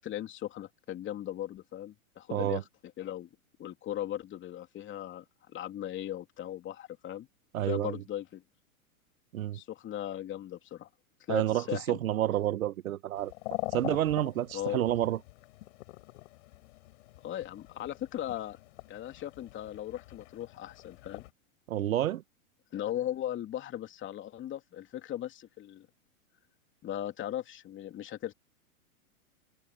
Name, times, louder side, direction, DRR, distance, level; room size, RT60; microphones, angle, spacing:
voice 1, 0.0-2.6 3.0-3.3 3.6-7.3 7.6-8.4 9.5-10.9 11.3-12.0 14.5-14.8 17.2-18.6 18.9-21.2 22.7-25.9 26.8-28.3, left 12 dB, 25° left, 3.1 m, -38 dB
voice 2, 2.3-2.6 7.5-8.0 9.3-9.6 11.3-13.3 13.7-15.2 21.7-22.2, right 12 dB, 70° right, 1.2 m, -29 dB
sound 1, 13.1-21.3, left 20 dB, 55° left, 7.1 m, -44 dB
hypercardioid pair, 115°, 43 cm